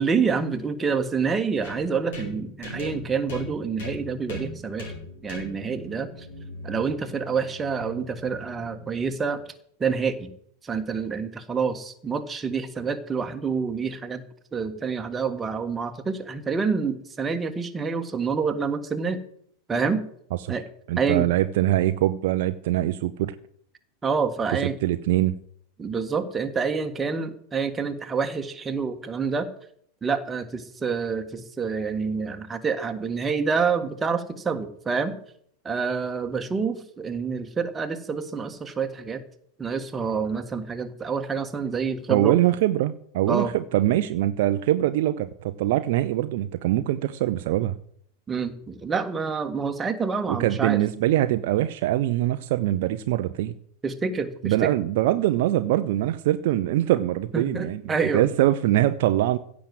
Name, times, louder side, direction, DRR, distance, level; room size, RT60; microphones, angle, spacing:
voice 1, 0.0-4.9 5.2-6.1 6.6-9.4 9.8-10.3 10.6-14.2 14.5-19.2 19.7-20.0 20.5-20.6 21.0-21.3 24.0-24.8 25.8-29.5 30.0-35.1 35.6-39.2 39.6-42.4 43.3-43.5 48.3-50.8 53.8-54.7 57.3-58.3, right 5 dB, 15° right, 6 dB, 1.6 m, -27 dB
sound 1, 1.6-9.4, equal, 55° left, 5.5 m, -40 dB
voice 2, 20.9-23.3 24.8-25.3 42.1-47.7 50.3-53.5 54.4-57.8 58.1-59.4, right 14 dB, 50° right, 10 dB, 0.7 m, -23 dB
16.0 x 6.1 x 7.9 m, 0.65 s
figure-of-eight pair, 90°, 0 cm